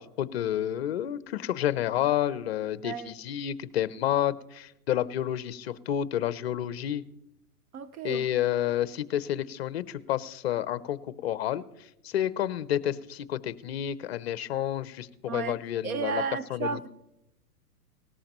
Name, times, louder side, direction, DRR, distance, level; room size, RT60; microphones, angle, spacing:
voice 1, 0.0-7.0 8.0-11.6 12.0-16.2 16.5-16.9, left 11 dB, 40° left, 17 dB, 0.6 m, -30 dB
voice 2, 2.8-3.1 7.7-8.3 15.3-15.6 15.8-16.9, right 6 dB, 65° right, 14 dB, 0.9 m, -33 dB
18.5 x 13.5 x 3.0 m, 0.88 s
hypercardioid pair, 150°, 48 cm